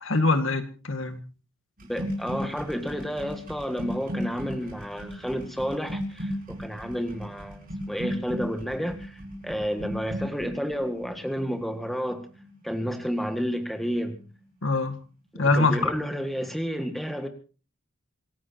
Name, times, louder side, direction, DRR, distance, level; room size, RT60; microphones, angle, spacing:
voice 1, 0.0-1.2 14.6-15.0 15.3-15.9, left 3 dB, 65° left, 8 dB, 1.9 m, -23 dB
sound 1, 1.8-13.7 13.9-14.3, equal, 40° right, 7.6 m, -36 dB
voice 2, 1.9-12.2 12.6-14.2 15.3-17.3, equal, ahead, 6 dB, 1.8 m, -31 dB
27.5 x 14.5 x 2.9 m, 0.36 s
head